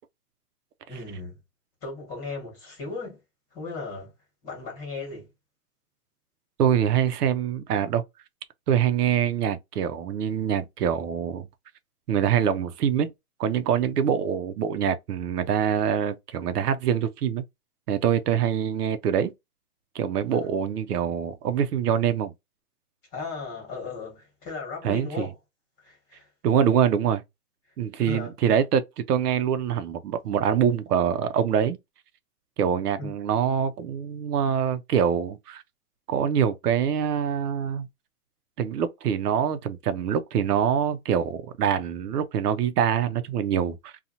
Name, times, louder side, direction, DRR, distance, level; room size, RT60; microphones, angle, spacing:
voice 1, 0.9-1.4 1.8-3.2 3.5-4.1 4.4-5.3 20.2-20.5 23.1-25.4 25.8-26.3 27.9-28.3 33.0-33.1, left 3 dB, 20° left, 1.3 m, -36 dB
voice 2, 6.6-8.0 8.7-11.5 12.1-13.1 13.4-17.4 17.9-19.3 19.9-22.3 24.8-25.3 26.4-27.2 27.8-31.8 32.6-35.6 36.1-37.9 38.6-43.9, right 8 dB, 85° right, 0.7 m, -24 dB
2.7 x 2.3 x 2.6 m
hypercardioid pair, 160°, 45 cm